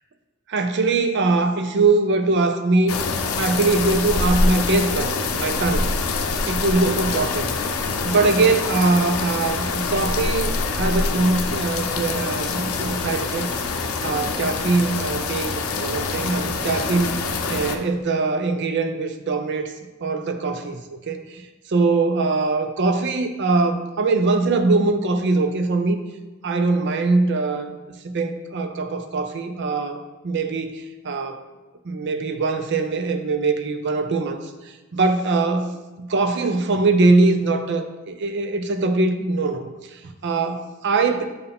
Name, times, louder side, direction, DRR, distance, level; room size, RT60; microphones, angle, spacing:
voice 1, 0.5-3.0 3.4-5.9 6.4-7.5 8.0-13.5 14.0-19.7 20.0-26.0 26.4-31.4 31.8-41.3, right 3 dB, 55° right, 8 dB, 0.5 m, -22 dB
sound 1, 2.9-17.8, left 4 dB, 90° left, 0.6 m, -25 dB
6.6 x 4.5 x 3.5 m, 1.2 s
head